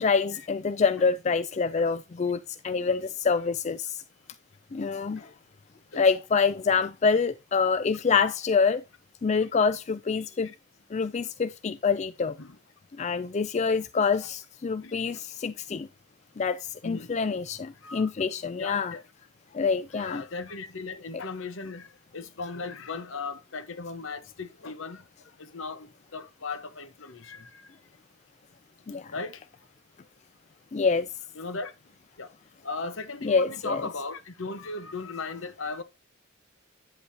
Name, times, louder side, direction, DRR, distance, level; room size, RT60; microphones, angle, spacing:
voice 1, 0.0-3.9 4.7-5.2 5.9-8.8 9.2-10.5 10.9-12.3 13.0-15.9 16.4-16.6 16.8-18.9 19.5-20.2 28.9-29.0 30.7-31.1 33.2-33.9, left 5 dB, 35° left, 0.3 m, -26 dB
voice 2, 18.6-19.0 19.9-25.0 25.4-27.7 29.1-29.4 31.4-31.7 32.2-32.3 32.6-35.8, left 3 dB, 70° left, 1.1 m, -37 dB
9.4 x 8.0 x 2.8 m
head